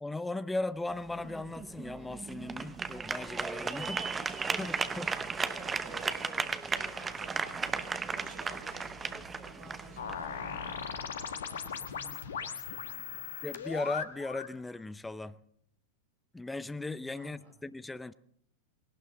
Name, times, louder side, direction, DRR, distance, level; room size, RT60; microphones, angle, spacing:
voice 1, 0.0-5.1 13.4-15.4 16.3-18.1, left 2 dB, 5° left, 15 dB, 0.6 m, -37 dB
sound 1, 0.7-13.0, left 4 dB, 45° left, 4.9 m, -61 dB
sound 2, 0.9-11.0, right 5 dB, 15° right, 0.9 m, -36 dB
voice 2, 4.4-13.4 17.1-17.6, right 2 dB, 50° right, 1 dB, 5.9 m, -52 dB
sound 3, 10.0-14.6, left 7 dB, 65° left, 1.3 m, -39 dB
19.5 x 18.0 x 3.8 m, 0.67 s
figure-of-eight pair, 90°, 0 cm